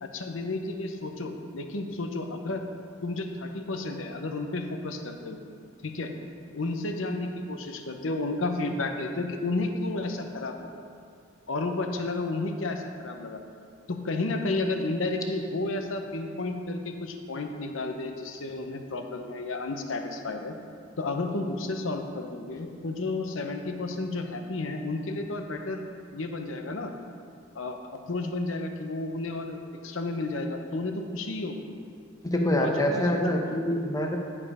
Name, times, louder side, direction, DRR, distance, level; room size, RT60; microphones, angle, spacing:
voice 1, 0.0-2.6 3.0-5.4 5.8-6.1 6.5-10.8 11.5-13.4 13.9-20.6 21.0-25.8 26.1-26.9 27.5-29.6 29.8-31.7 32.5-33.4, left 2 dB, 80° left, 5 dB, 0.8 m, -32 dB
voice 2, 32.2-34.2, left 1 dB, 20° left, 1 dB, 0.8 m, -25 dB
10.5 x 4.9 x 4.9 m, 2.2 s
head